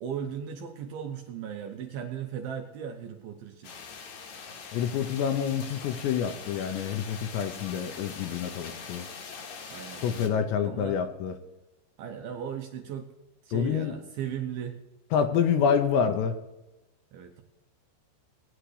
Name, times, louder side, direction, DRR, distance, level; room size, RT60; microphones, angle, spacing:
voice 1, 0.0-3.7 9.7-11.0 12.0-13.1 13.4-14.8 17.1-17.4, right 8 dB, 85° right, 4 dB, 2.2 m, -37 dB
sound 1, 3.6-10.3, left 5 dB, 60° left, 2.0 m, -43 dB
voice 2, 4.7-9.1 10.0-11.4 13.5-13.9 15.1-16.4, left 7 dB, 85° left, 6 dB, 2.8 m, -27 dB
19.5 x 10.5 x 3.3 m, 1.0 s
omnidirectional pair, 5.3 m